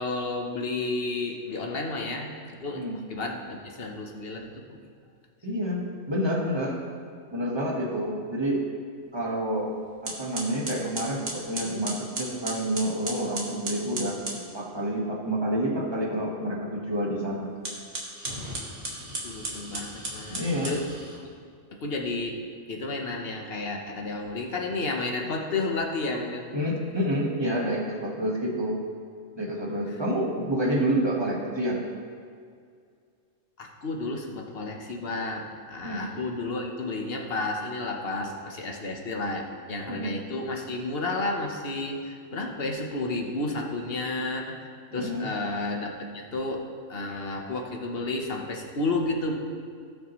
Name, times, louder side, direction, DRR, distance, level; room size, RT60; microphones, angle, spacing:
voice 1, 0.0-2.8 3.1-4.5 19.2-20.9 21.2-21.3 21.8-22.4 22.7-26.6 33.6-46.6 46.9-49.3, left 2 dB, 50° left, 1 dB, 1.2 m, -31 dB
voice 2, 5.4-6.8 7.3-8.6 9.1-9.7 10.0-17.5 20.3-20.8 26.5-28.8 29.4-31.8 35.8-36.0 39.9-40.1 44.9-45.3, equal, 20° right, -3 dB, 1.5 m, -28 dB
sound 1, 9.5-9.7 10.0-14.4 17.5-21.2, right 2 dB, 50° right, 1.7 m, -35 dB
17.5 x 6.0 x 3.1 m, 2.2 s
omnidirectional pair, 1.3 m